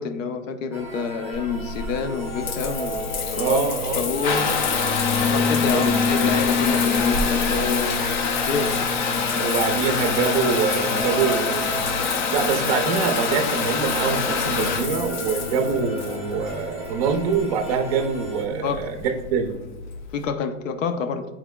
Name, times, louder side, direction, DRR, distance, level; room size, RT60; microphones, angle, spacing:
voice 1, 0.0-3.6 4.0-4.5 5.2-8.1 8.5-8.8 18.6-18.9 20.1-21.3, left 5 dB, 80° left, 8 dB, 0.8 m, -28 dB
sound 1, 0.7-18.4, equal, 5° left, 0.8 m, -35 dB
Water tap faucet / Bathtub (filling or washing) / Trickle dribble, 1.3-20.2, left 5 dB, 40° left, 0.4 m, -25 dB
voice 2, 3.4-4.1 5.7-5.9 9.4-11.7 12.3-19.5, right 5 dB, 30° right, 5 dB, 0.5 m, -24 dB
10.0 x 4.3 x 2.3 m, 1.1 s
supercardioid pair, 175°, 38 cm